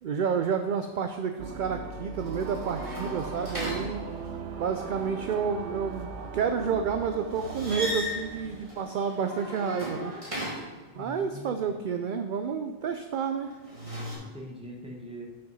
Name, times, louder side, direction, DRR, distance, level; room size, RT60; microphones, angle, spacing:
voice 1, 0.0-4.1 4.6-10.1 10.9-13.5, right 6 dB, 60° right, 7 dB, 0.5 m, -30 dB
sound 1, 1.4-8.7, right 5 dB, 75° right, 1.1 m, -39 dB
sound 2, 2.1-4.5 7.3-10.9 13.5-14.2, equal, 25° right, 2.1 m, -37 dB
voice 2, 10.9-11.9 14.2-15.3, equal, 5° right, -1 dB, 1.2 m, -43 dB
6.5 x 5.8 x 5.5 m, 1.3 s
omnidirectional pair, 1.2 m